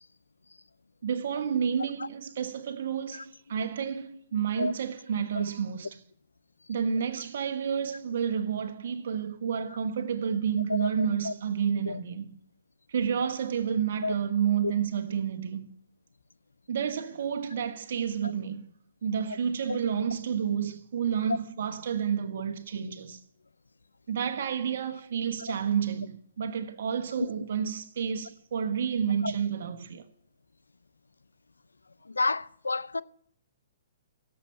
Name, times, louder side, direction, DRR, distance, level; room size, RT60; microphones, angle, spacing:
voice 1, 1.0-6.0 6.7-12.3 12.9-15.7 16.7-18.7 19.0-23.2 24.1-30.1, right 7 dB, 60° right, 1.3 m, -30 dB
voice 2, 10.7-11.3 11.9-12.0 14.0-14.1 14.6-14.7 25.5-25.6 29.2-29.3 32.1-33.0, left 3 dB, 85° left, 0.5 m, -30 dB
16.0 x 7.7 x 5.7 m
figure-of-eight pair, 125°, 0 cm